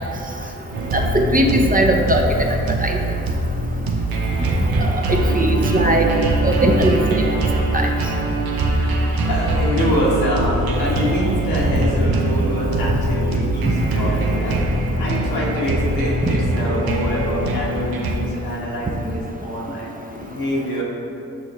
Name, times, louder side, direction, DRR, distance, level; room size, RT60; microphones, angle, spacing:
sound 1, 0.7-18.2, right 2 dB, 80° right, 0.7 m, -22 dB
voice 1, 0.9-2.2 2.8-3.0 4.8-6.0 6.4-7.2 7.7-7.9 13.6-13.7 16.2-16.4, right 1 dB, 25° right, 1 dB, 0.7 m, -19 dB
voice 2, 8.8-14.6 15.0-20.8, equal, 80° left, -4 dB, 1.3 m, -25 dB
6.4 x 5.0 x 3.1 m, 2.7 s
cardioid pair, 45°, 36 cm